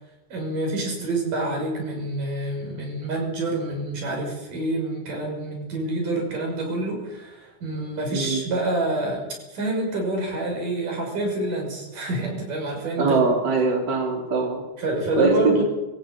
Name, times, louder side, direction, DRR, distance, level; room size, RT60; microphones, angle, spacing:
voice 1, 0.3-9.2 9.5-13.2 14.8-15.6, right 2 dB, 75° right, 1 dB, 7.7 m, -27 dB
voice 2, 8.1-8.4 13.0-14.6 15.2-15.6, right 3 dB, 30° right, 0 dB, 4.1 m, -22 dB
23.0 x 16.0 x 9.1 m, 1.1 s
omnidirectional pair, 3.7 m